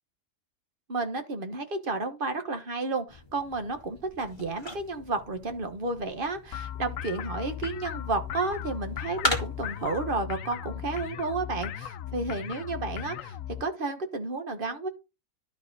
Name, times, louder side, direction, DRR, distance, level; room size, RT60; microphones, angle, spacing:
voice 1, 0.9-14.9, right 3 dB, 40° right, 1.4 m, -32 dB
sound 1, 3.1-9.9, left 1 dB, 20° left, 1.9 m, -38 dB
sound 2, 6.5-13.6, left 10 dB, 70° left, 1.0 m, -37 dB
11.5 x 4.9 x 4.0 m
omnidirectional pair, 1.5 m